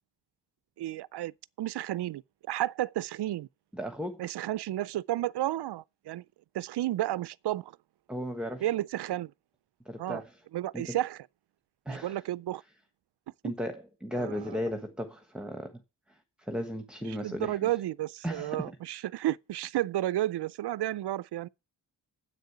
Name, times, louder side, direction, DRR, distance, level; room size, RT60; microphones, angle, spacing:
voice 1, 0.8-1.3 1.6-2.2 2.5-3.5 4.2-6.2 6.5-7.8 8.6-9.3 10.0-10.2 10.5-11.2 11.9-12.6 13.4-13.5 14.1-14.6 17.2-21.5, right 14 dB, 70° right, 0.5 m, -32 dB
voice 2, 3.7-4.3 8.1-8.7 9.8-10.3 10.7-11.0 11.8-12.2 13.4-15.8 16.1-17.7 18.2-18.8, equal, ahead, 1.3 m, -36 dB
8.1 x 6.6 x 8.1 m
cardioid pair, 65°, 42 cm